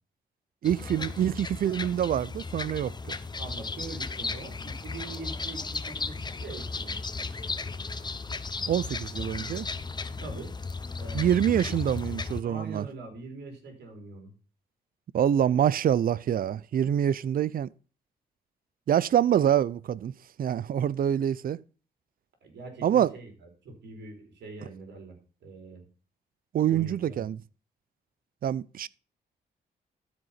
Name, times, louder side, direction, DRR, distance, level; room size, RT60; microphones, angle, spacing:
sound 1, 0.6-12.4, left 4 dB, 25° left, 0.7 m, -35 dB
voice 1, 0.6-3.2 8.7-9.7 11.1-12.8 15.1-17.7 18.9-21.6 22.8-23.1 26.5-27.4 28.4-28.9, right 10 dB, 55° right, 0.5 m, -26 dB
voice 2, 3.4-7.0 9.1-9.3 10.2-10.5 11.0-12.1 12.4-14.3 22.4-25.8 26.7-27.3, right 3 dB, 75° right, 3.7 m, -43 dB
12.5 x 5.2 x 5.7 m
cardioid pair, 70°, 18 cm